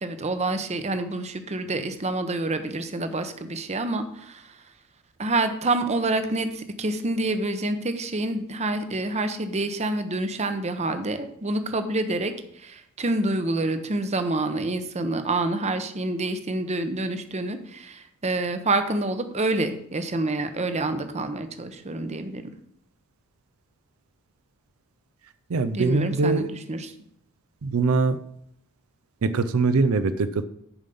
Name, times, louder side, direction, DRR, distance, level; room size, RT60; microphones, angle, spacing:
voice 1, 0.0-4.6 5.2-22.4 25.7-26.9, right 2 dB, 30° right, 9 dB, 0.7 m, -27 dB
voice 2, 25.5-26.5 27.6-28.2 29.2-30.4, right 3 dB, 75° right, 11 dB, 0.5 m, -22 dB
7.1 x 5.4 x 6.8 m, 0.72 s
head